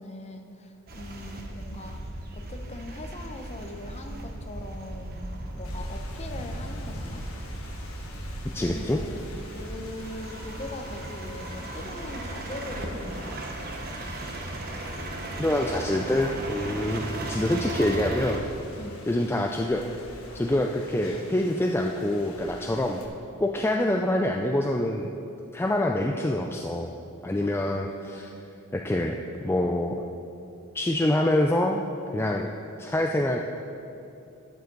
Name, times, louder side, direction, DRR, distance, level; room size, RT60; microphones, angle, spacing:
voice 1, 0.0-2.0 2.3-7.3 8.6-13.4 18.8-19.0 27.3-28.3, left 1 dB, 30° left, 5 dB, 0.8 m, -41 dB
sound 1, 0.9-18.4, right 1 dB, 50° right, 1.2 m, -36 dB
Rain, 5.6-23.1, left 2 dB, 90° left, 1.3 m, -47 dB
voice 2, 8.5-9.0 15.4-18.4 19.1-19.9 20.3-23.0 23.4-25.1 25.5-26.9 27.2-28.3 28.7-29.2 29.4-30.0 30.7-31.8 32.1-32.5 32.8-33.4, left 1 dB, 10° left, 2 dB, 0.4 m, -26 dB
12.5 x 9.4 x 4.0 m, 2.7 s
head